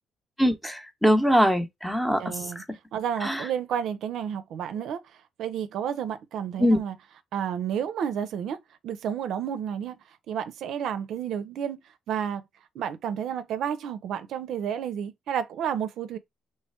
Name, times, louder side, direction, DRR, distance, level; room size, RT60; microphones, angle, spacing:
voice 1, 0.4-2.2 3.2-3.4 6.6-6.8, equal, ahead, 0.7 m, -22 dB
voice 2, 2.2-2.6 2.9-5.0 5.4-7.0 7.3-8.6 8.8-10.0 10.3-11.8 12.1-12.4 12.7-16.2, right 8 dB, 80° right, 0.4 m, -31 dB
3.2 x 2.2 x 4.2 m
cardioid pair, 90°, 0 cm